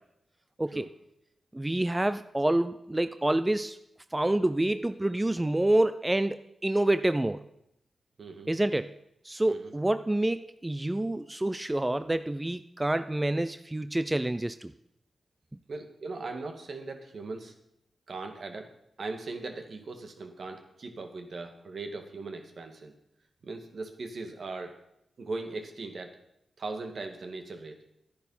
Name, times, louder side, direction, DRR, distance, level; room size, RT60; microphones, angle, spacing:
voice 1, 1.5-3.8 4.1-7.4 8.5-8.9 9.2-14.7, right 1 dB, 20° right, 11 dB, 0.5 m, -27 dB
voice 2, 8.2-8.5 9.5-9.7 15.7-17.5 18.1-18.7 19.0-22.9 23.4-24.8 25.2-26.2 26.6-27.8, right 3 dB, 65° right, 5 dB, 1.9 m, -39 dB
11.5 x 10.5 x 5.6 m, 0.80 s
cardioid pair, 50°, 0 cm